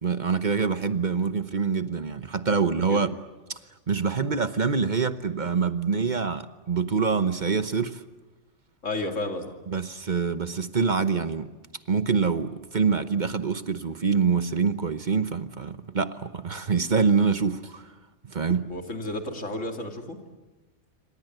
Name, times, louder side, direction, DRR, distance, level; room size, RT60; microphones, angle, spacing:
voice 1, 0.0-3.2 3.5-3.6 3.9-8.0 9.7-11.5 11.9-17.9 18.3-18.7, right 5 dB, 40° right, 1.1 m, -25 dB
voice 2, 2.6-3.0 8.8-9.5 18.7-20.2, left 2 dB, 85° left, 3.1 m, -32 dB
27.5 x 26.0 x 7.9 m
omnidirectional pair, 1.2 m